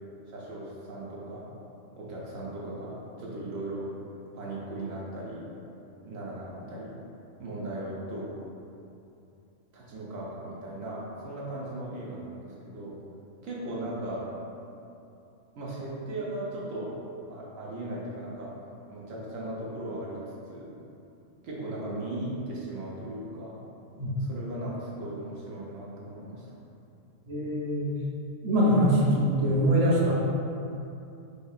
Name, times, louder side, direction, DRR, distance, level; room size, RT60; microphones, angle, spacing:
voice 1, 0.3-1.5 1.9-3.9 4.3-5.5 6.0-7.0 7.4-8.3 9.7-13.0 13.4-14.3 15.6-17.0 17.3-18.5 18.9-20.7 21.4-23.6 23.9-26.4, right 1 dB, 90° right, -5 dB, 1.2 m, -37 dB
voice 2, 27.3-28.0 28.4-30.1, equal, 45° right, -4 dB, 0.5 m, -23 dB
4.8 x 2.7 x 2.4 m, 2.7 s
omnidirectional pair, 1.3 m